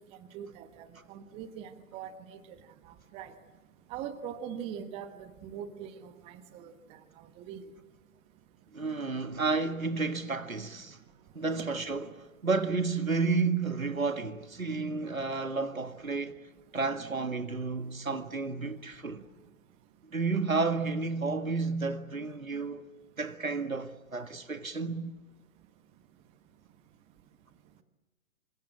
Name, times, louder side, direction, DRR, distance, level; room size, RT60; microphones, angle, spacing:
voice 1, 0.3-2.6 2.8-3.3 3.9-7.0 7.4-7.6, right 8 dB, 15° right, 1.2 m, -42 dB
voice 2, 8.7-11.0 11.4-16.4 16.7-19.2 20.1-22.8 23.2-25.2, right 4 dB, 80° right, 1.9 m, -31 dB
27.0 x 26.0 x 7.6 m
figure-of-eight pair, 125°, 41 cm